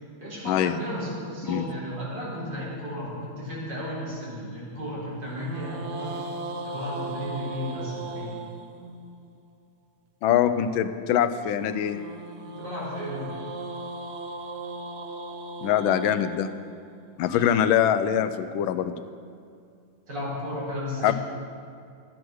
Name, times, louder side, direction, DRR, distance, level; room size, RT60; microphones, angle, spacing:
voice 1, 0.2-6.1 6.6-8.4 12.6-13.3 17.3-17.5 20.1-21.1, left 1 dB, 60° right, -8 dB, 4.5 m, -34 dB
sound 1, 0.6-3.0 5.2-9.4 11.5-17.7, right 2 dB, 90° right, 0.6 m, -39 dB
voice 2, 10.2-12.0 15.6-16.5 17.2-18.9 21.0-21.1, left 10 dB, 90° left, 11 dB, 1.4 m, -23 dB
12.0 x 9.2 x 6.3 m, 2.3 s
omnidirectional pair, 2.2 m